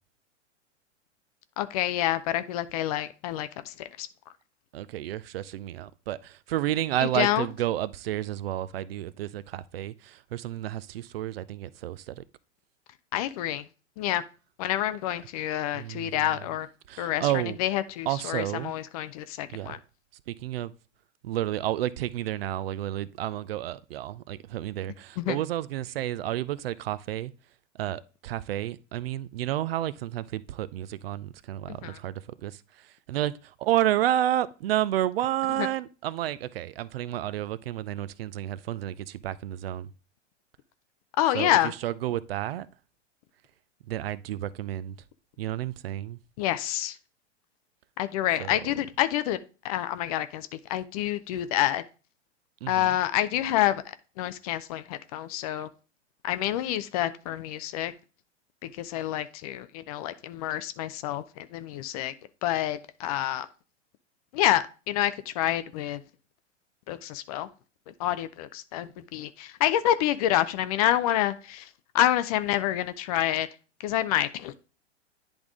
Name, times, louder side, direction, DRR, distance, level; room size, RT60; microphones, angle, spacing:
voice 1, 1.6-4.1 7.0-7.5 13.1-13.6 14.0-14.2 14.6-16.7 17.0-17.3 17.6-19.8 25.2-25.4 31.7-32.0 35.6-35.7 41.2-41.7 46.4-47.0 48.0-49.4 49.6-51.8 52.7-53.8 54.2-55.7 56.2-57.9 58.8-62.1 62.4-63.5 64.3-66.0 66.9-67.5 68.0-71.7 71.9-73.5 73.8-74.5, left 12 dB, 30° left, 0.4 m, -28 dB
voice 2, 4.7-12.2 15.7-16.4 16.9-17.6 18.1-18.7 19.5-19.8 20.3-20.7 21.2-27.3 27.8-39.9 41.3-42.7 43.9-44.9 45.4-46.2 48.4-48.6 52.6-53.0, right 13 dB, 55° right, 0.5 m, -31 dB
10.5 x 3.5 x 3.6 m
hypercardioid pair, 110°, 37 cm